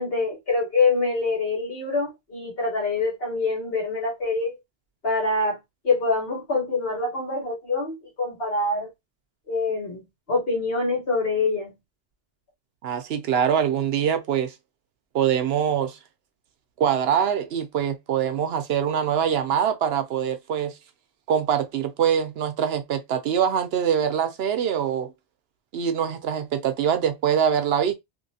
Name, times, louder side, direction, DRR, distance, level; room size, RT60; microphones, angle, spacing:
voice 1, 0.0-4.6 5.0-5.6 5.8-8.9 9.5-10.0 10.3-11.7, left 3 dB, 65° left, 1.6 m, -25 dB
voice 2, 12.8-14.5 15.1-16.0 16.8-20.7 21.3-25.1 25.7-27.9, right 8 dB, 75° right, 0.8 m, -24 dB
2.9 x 2.7 x 2.7 m
omnidirectional pair, 1.1 m